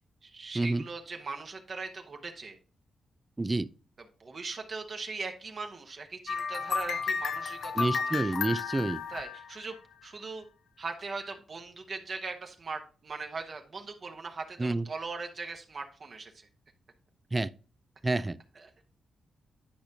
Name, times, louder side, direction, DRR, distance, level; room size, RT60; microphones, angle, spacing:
voice 1, 0.2-2.6 4.2-8.3 9.1-9.8 10.0-10.4 10.8-16.5 18.5-18.9, right 4 dB, 45° right, 1.0 m, -40 dB
voice 2, 3.4-3.7 7.8-9.0 14.6-14.8 17.3-17.5 18.0-18.4, right 2 dB, 20° right, 0.4 m, -28 dB
sound 1, 6.3-10.0, left 6 dB, 75° left, 0.6 m, -33 dB
10.5 x 5.1 x 2.8 m
cardioid pair, 100°, 0 cm